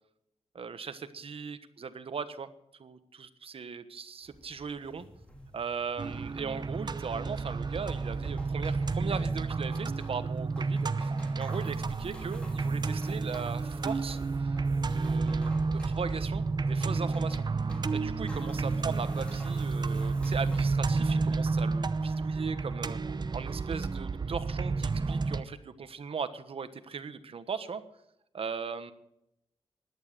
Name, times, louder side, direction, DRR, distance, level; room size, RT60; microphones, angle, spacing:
voice 1, 0.5-2.5 2.8-5.1 5.5-11.1 11.4-14.5 14.9-15.5 15.8-17.4 17.9-23.0 23.3-27.8 28.3-28.9, right 5 dB, 65° right, 11 dB, 1.3 m, -38 dB
sound 1, 4.2-20.7, equal, 10° left, 4.0 m, -52 dB
sound 2, 6.0-25.4, right 4 dB, 45° right, 0.8 m, -31 dB
16.0 x 11.5 x 6.8 m, 0.82 s
wide cardioid pair, 115°, 11 cm